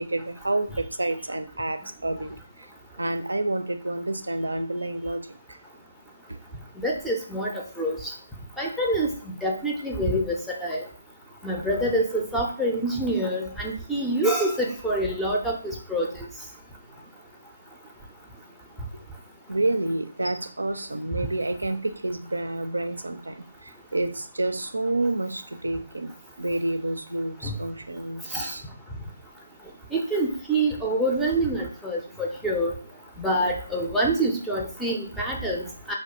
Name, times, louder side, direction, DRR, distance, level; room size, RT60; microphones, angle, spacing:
voice 1, 0.0-2.7 3.0-5.6 6.3-6.4 19.5-26.1 26.4-28.7, right 2 dB, 75° right, 8 dB, 0.4 m, -29 dB
voice 2, 6.8-8.1 8.6-9.1 9.4-10.8 11.4-16.1 27.4-27.5 28.3-28.5 29.9-32.7 33.2-35.9, right 1 dB, ahead, -2 dB, 0.5 m, -26 dB
4.4 x 2.2 x 2.9 m, 0.42 s
figure-of-eight pair, 145°, 0 cm